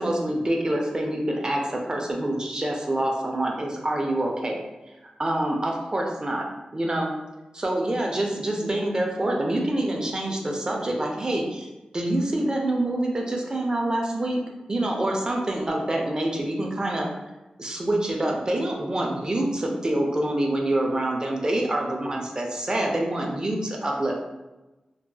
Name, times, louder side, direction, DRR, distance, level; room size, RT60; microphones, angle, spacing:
voice 1, 0.0-4.6 5.2-6.5 6.7-7.1 7.5-11.7 11.9-14.4 14.7-17.1 17.6-24.2, right 1 dB, 30° right, 0 dB, 0.5 m, -26 dB
2.7 x 2.3 x 2.3 m, 1.1 s
wide cardioid pair, 80°, 2 cm